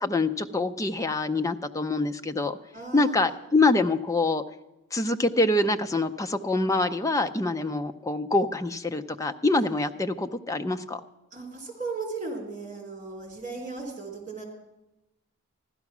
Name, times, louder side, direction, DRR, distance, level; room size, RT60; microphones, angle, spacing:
voice 1, 0.0-2.6 2.9-4.4 4.9-11.0, left 2 dB, 15° left, 7 dB, 0.5 m, -25 dB
voice 2, 2.7-3.4 11.3-14.4, right 3 dB, 35° right, 0 dB, 3.6 m, -36 dB
15.5 x 12.0 x 6.1 m, 0.99 s
head